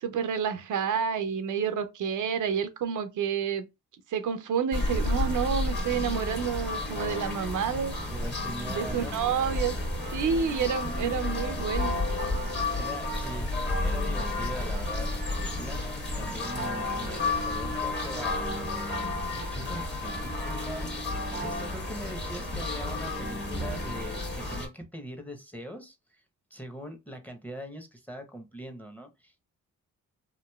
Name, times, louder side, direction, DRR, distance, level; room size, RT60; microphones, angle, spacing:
voice 1, 0.0-3.6 4.1-7.9 8.6-9.7 10.1-12.0, right 7 dB, 65° right, 0.5 m, -29 dB
sound 1, 4.7-24.7, left 2 dB, 30° left, 1.3 m, -31 dB
voice 2, 8.1-9.3 10.8-11.2 12.8-13.5 13.8-15.8 16.2-18.7 19.3-20.9 21.3-26.2 26.5-29.4, equal, 5° left, 0.8 m, -41 dB
2.9 x 2.5 x 2.2 m
supercardioid pair, 60°, 34 cm